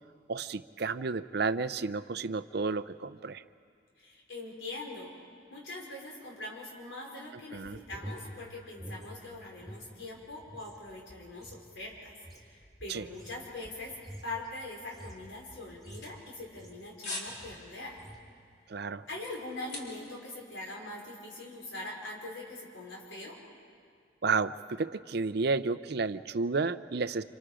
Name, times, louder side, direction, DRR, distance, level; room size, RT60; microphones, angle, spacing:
voice 1, 0.3-3.4 7.5-7.8 12.9-13.0 18.7-19.1 24.2-27.2, right 4 dB, 55° right, 13 dB, 0.5 m, -31 dB
voice 2, 4.0-5.1 5.5-12.1 12.4-18.0 19.1-23.4, left 2 dB, 75° left, -2 dB, 5.2 m, -42 dB
sound 1, 7.6-9.9 10.2-16.9 17.3-17.6 17.9-18.3, equal, ahead, 3.0 m, -48 dB
sound 2, 15.6-16.7 17.0-17.4 17.7-18.0 18.4-20.2 20.5-20.6, left 2 dB, 55° left, 3.7 m, -42 dB
27.0 x 27.0 x 5.0 m, 2.2 s
head